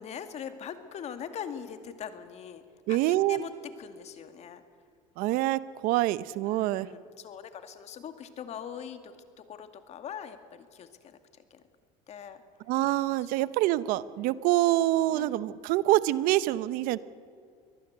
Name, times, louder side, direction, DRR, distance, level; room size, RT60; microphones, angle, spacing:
voice 1, 0.0-2.6 2.9-4.6 6.5-11.2 11.5-11.6 12.1-12.4 13.3-13.5 15.1-15.4, left 8 dB, 45° left, 9 dB, 2.2 m, -42 dB
voice 2, 2.9-3.4 5.2-6.9 12.7-17.0, right 16 dB, 65° right, 17 dB, 0.8 m, -26 dB
23.5 x 19.0 x 8.1 m, 2.3 s
supercardioid pair, 115°, 15 cm